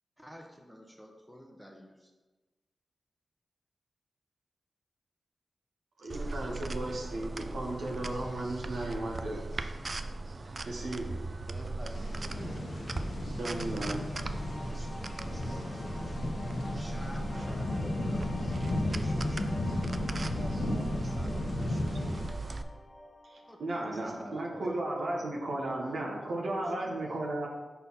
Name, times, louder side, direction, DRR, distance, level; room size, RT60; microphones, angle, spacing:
voice 1, 0.2-2.1 16.7-20.1 23.5-27.3, equal, 5° right, 1 dB, 0.8 m, -51 dB
voice 2, 6.0-9.4 10.7-11.1 13.4-14.0 23.6-27.5, right 1 dB, 85° right, -2 dB, 1.0 m, -35 dB
sound 1, 6.1-22.6, right 2 dB, 50° right, 0.4 m, -39 dB
voice 3, 11.5-12.7 13.4-16.4 17.3-18.8 20.3-22.3 24.0-24.7, equal, 30° right, -2 dB, 1.4 m, -48 dB
sound 2, 11.9-22.3, left 1 dB, 70° left, 0.7 m, -34 dB
sound 3, 13.6-24.7, left 1 dB, 35° left, 0.6 m, -49 dB
4.4 x 4.0 x 5.5 m, 1.2 s
cardioid pair, 60°, 0 cm